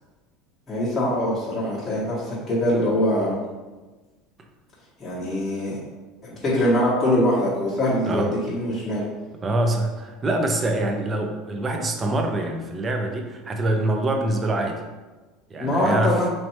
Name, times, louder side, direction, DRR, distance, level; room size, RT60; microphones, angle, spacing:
voice 1, 0.7-3.4 5.0-5.8 6.2-9.0 15.6-16.3, left 1 dB, 15° left, -9 dB, 1.0 m, -23 dB
voice 2, 8.1-8.4 9.4-14.8 15.5-16.2, right 2 dB, 20° right, 3 dB, 0.5 m, -25 dB
4.1 x 3.1 x 3.1 m, 1.2 s
cardioid pair, 155°, 0 cm